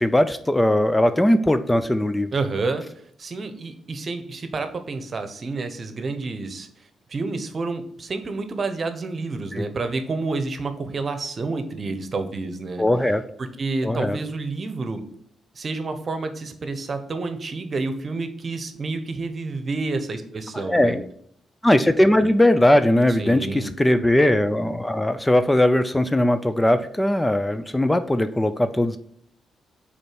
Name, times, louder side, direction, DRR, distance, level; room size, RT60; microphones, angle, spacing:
voice 1, 0.0-2.3 9.5-9.7 12.8-13.2 13.8-14.2 20.5-21.0 21.6-29.0, left 1 dB, 15° left, 11 dB, 0.5 m, -19 dB
voice 2, 2.3-2.8 3.2-6.7 7.1-12.8 13.4-15.0 15.5-20.9 23.1-23.7, right 3 dB, 50° right, 8 dB, 1.0 m, -29 dB
5.3 x 4.2 x 6.0 m, 0.67 s
supercardioid pair, 55°, 0 cm